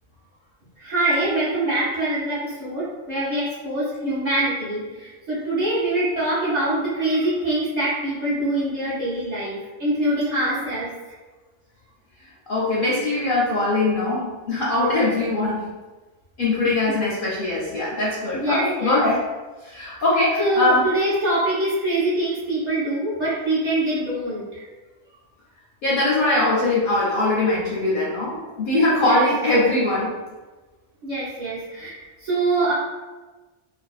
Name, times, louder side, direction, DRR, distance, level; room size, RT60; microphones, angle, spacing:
voice 1, 0.8-10.9 16.6-16.7 18.3-19.0 20.4-24.6 28.4-28.5 29.0-29.2 31.0-32.7, right 1 dB, 45° right, -9 dB, 0.7 m, -24 dB
voice 2, 12.5-15.8 16.4-19.2 19.6-20.8 25.8-30.1, left 2 dB, 60° left, -6 dB, 0.6 m, -21 dB
2.5 x 2.1 x 2.3 m, 1.2 s
omnidirectional pair, 1.2 m